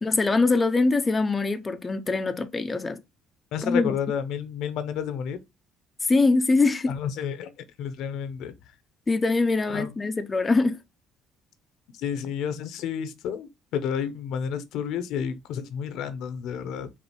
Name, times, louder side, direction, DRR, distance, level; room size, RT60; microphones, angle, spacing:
voice 1, 0.0-3.0 3.6-3.9 6.1-6.9 9.1-10.8, left 3 dB, 25° left, 0.4 m, -23 dB
voice 2, 3.5-5.4 6.9-7.5 7.8-8.5 9.7-9.9 12.0-16.9, left 8 dB, 75° left, 0.6 m, -31 dB
5.2 x 2.5 x 3.0 m
cardioid pair, 90°, 0 cm